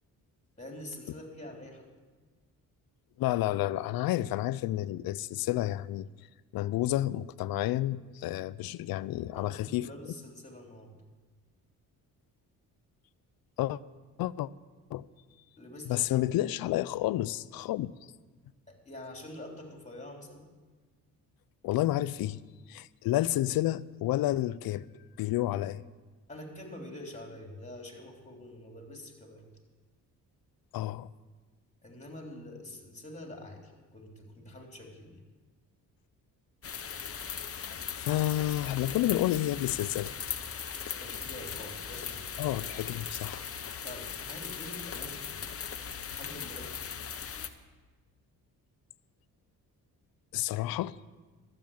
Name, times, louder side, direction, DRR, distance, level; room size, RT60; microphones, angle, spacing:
voice 1, 0.6-1.8 9.3-10.9 15.6-16.1 18.7-20.5 26.3-29.4 31.8-35.2 41.0-42.5 43.8-45.5 46.1-46.8, left 1 dB, 20° left, 3.3 m, -46 dB
voice 2, 3.2-6.1 6.5-9.9 13.6-13.8 14.2-14.5 14.9-15.0 15.9-17.9 21.6-22.4 22.7-24.9 25.2-25.8 30.7-31.1 37.7-40.1 42.4-43.4 50.3-50.9, left 14 dB, 75° left, 0.5 m, -30 dB
sound 1, 36.6-47.5, left 7 dB, 40° left, 0.9 m, -39 dB
12.5 x 7.8 x 8.5 m
cardioid pair, 75°, 36 cm